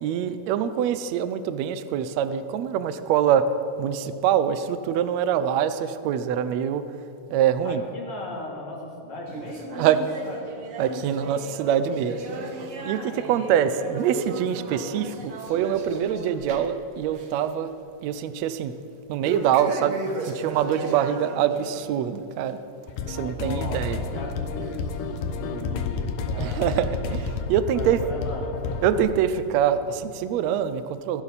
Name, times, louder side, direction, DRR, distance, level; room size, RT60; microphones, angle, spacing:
voice 1, 0.0-3.5 3.8-6.8 7.3-7.8 9.8-10.0 10.8-12.2 12.4-12.6 12.8-17.7 18.0-18.7 19.1-20.0 20.3-22.6 23.0-24.0 26.4-28.0 28.8-31.2, right 9 dB, 75° right, 11 dB, 1.7 m, -24 dB
voice 2, 7.6-9.9 10.2-10.4 13.2-13.4 23.3-26.7 27.7-28.6, left 2 dB, 40° left, -3 dB, 3.9 m, -37 dB
sound 1, 9.3-16.8 17.1-17.5 17.8-17.9 19.2-21.9 22.3-22.5 23.2-23.3 24.2-24.3 25.0-25.1, right 3 dB, 55° right, 1.9 m, -35 dB
sound 2, 22.9-29.0, left 4 dB, 90° left, 2.7 m, -30 dB
21.5 x 16.0 x 4.2 m, 2.7 s
omnidirectional pair, 3.7 m